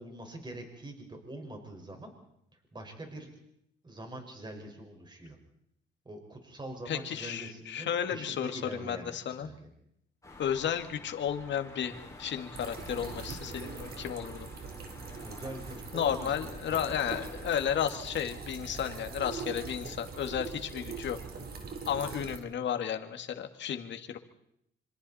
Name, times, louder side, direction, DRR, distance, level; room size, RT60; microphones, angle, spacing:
voice 1, 0.0-2.1 2.5-3.3 3.8-5.4 6.1-9.7 15.2-17.3, right 1 dB, 20° right, 3 dB, 5.3 m, -44 dB
voice 2, 6.9-9.5 10.4-14.5 15.9-21.2 21.9-24.2, left 9 dB, 65° left, 7 dB, 2.0 m, -33 dB
sound 1, 10.2-17.9, left 2 dB, 15° left, 5.3 m, -50 dB
sound 2, 12.5-22.4, right 5 dB, 50° right, 3.5 m, -42 dB
26.5 x 25.5 x 4.3 m, 0.76 s
cardioid pair, 90°, 20 cm